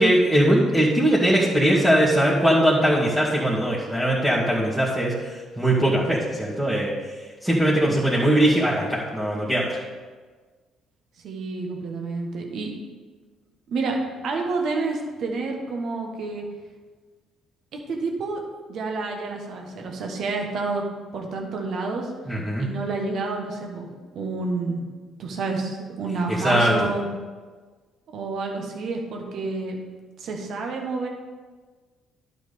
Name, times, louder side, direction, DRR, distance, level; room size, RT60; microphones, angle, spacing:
voice 1, 0.0-6.9 7.4-9.8 22.3-22.7 26.3-26.7, right 1 dB, 10° right, -8 dB, 2.2 m, -20 dB
voice 2, 11.2-12.7 13.7-14.0 14.2-16.4 17.9-18.4 18.7-20.8 21.1-22.1 22.6-23.9 24.1-24.8 25.2-27.1 28.1-29.8 30.2-31.1, right 3 dB, 60° right, 1 dB, 1.4 m, -29 dB
11.5 x 4.3 x 5.3 m, 1.4 s
hypercardioid pair, 50°, 0 cm